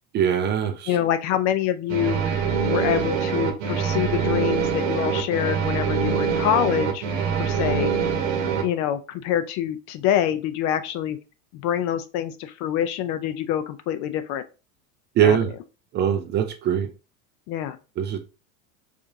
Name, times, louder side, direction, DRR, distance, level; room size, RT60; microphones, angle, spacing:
voice 1, 0.1-0.9 15.2-15.5 15.9-16.9 18.0-18.2, right 9 dB, 30° right, 7 dB, 0.4 m, -22 dB
voice 2, 0.9-7.0 7.4-7.9 8.6-11.2 11.5-14.4 15.2-15.4 17.5-17.8, left 10 dB, 45° left, 11 dB, 0.5 m, -26 dB
sound 1, 1.9-8.6, right 6 dB, 85° right, 1.2 m, -24 dB
4.9 x 2.5 x 2.7 m, 0.31 s
supercardioid pair, 130°, 39 cm